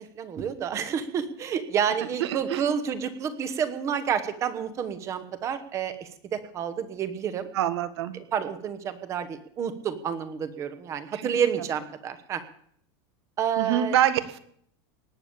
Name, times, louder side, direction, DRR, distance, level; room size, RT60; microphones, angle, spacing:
voice 1, 0.0-7.5 8.3-12.4 13.4-14.0, right 8 dB, 20° right, 11 dB, 1.0 m, -29 dB
voice 2, 2.2-2.7 7.5-8.1 11.1-11.2 13.6-14.4, right 11 dB, 75° right, 13 dB, 1.5 m, -25 dB
18.5 x 6.9 x 8.7 m, 0.64 s
supercardioid pair, 175°, 14 cm